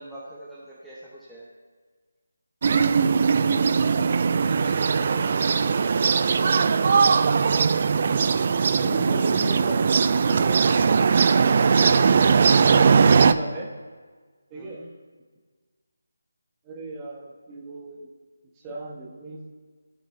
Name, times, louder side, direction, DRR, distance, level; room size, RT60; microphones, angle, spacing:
voice 1, 0.0-1.5 14.5-14.9, right 1 dB, ahead, -10 dB, 1.0 m, -44 dB
sound 1, 2.6-13.3, right 5 dB, 35° right, 0.3 m, -20 dB
voice 2, 8.8-10.7 11.8-13.7 14.5-14.8 16.6-18.1 18.6-19.5, right 2 dB, 15° right, -2 dB, 1.4 m, -35 dB
16.5 x 5.9 x 2.8 m, 1.5 s
figure-of-eight pair, 155°, 0 cm